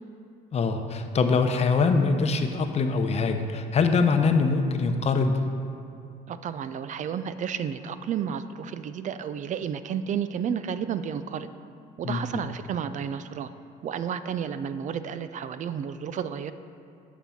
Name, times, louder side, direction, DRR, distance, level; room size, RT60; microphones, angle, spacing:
voice 1, 0.5-5.4 12.0-12.2, left 4 dB, 40° left, 6 dB, 0.8 m, -23 dB
voice 2, 6.3-11.5 12.0-13.5 13.8-16.5, right 8 dB, 45° right, 12 dB, 0.4 m, -31 dB
9.3 x 6.1 x 5.7 m, 2.7 s
cardioid pair, 110°, 17 cm